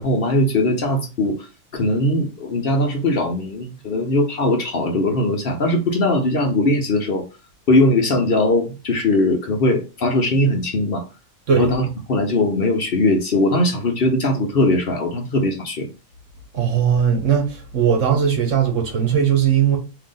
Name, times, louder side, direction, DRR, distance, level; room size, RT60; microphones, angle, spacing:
voice 1, 0.0-1.4 1.7-7.2 7.7-11.0 11.5-15.9, left 1 dB, 50° left, 0.9 m, -20 dB
voice 2, 16.5-19.8, right 8 dB, 70° right, 1.5 m, -18 dB
3.7 x 2.8 x 3.7 m
omnidirectional pair, 1.4 m